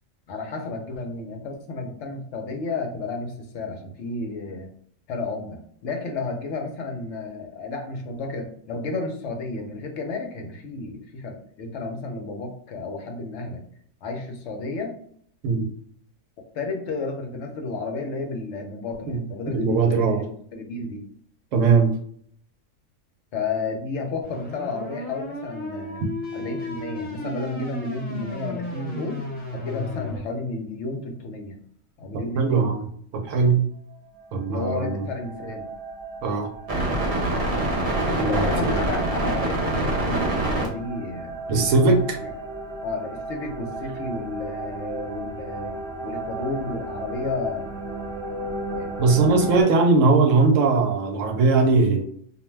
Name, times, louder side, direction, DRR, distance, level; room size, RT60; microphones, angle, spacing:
voice 1, 0.3-4.7 5.1-13.6 14.0-14.9 16.5-21.0 23.3-26.0 26.3-29.2 29.5-31.6 32.0-32.7 34.4-35.7 38.1-41.4 42.2-42.3 42.8-45.8 46.0-47.7 48.7-49.5, left 3 dB, 70° left, 3 dB, 0.9 m, -32 dB
voice 2, 19.5-20.2 21.5-21.9 32.4-32.9 33.1-33.6 34.3-35.0 36.2-36.5 38.2-38.8 41.5-42.2 49.0-52.0, right 4 dB, 80° right, 4 dB, 1.0 m, -20 dB
sound 1, 24.2-30.2, left 2 dB, 10° left, 0.7 m, -34 dB
sound 2, 34.2-34.3 34.6-49.6, right 2 dB, 55° right, 1.0 m, -29 dB
2.5 x 2.1 x 3.1 m, 0.63 s
omnidirectional pair, 1.3 m